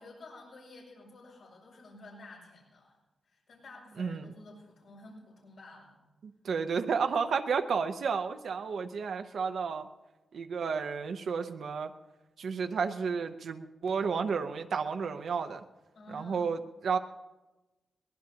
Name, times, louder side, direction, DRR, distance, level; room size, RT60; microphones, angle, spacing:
voice 1, 0.0-3.0 3.3-6.0 15.9-16.5, left 2 dB, 85° left, -4 dB, 6.4 m, -51 dB
voice 2, 4.0-4.3 6.2-9.9 10.3-11.9 12.4-15.6 16.1-17.0, right 5 dB, 75° right, 7 dB, 0.8 m, -32 dB
22.5 x 18.5 x 2.9 m, 1.1 s
cardioid pair, 95°, 0 cm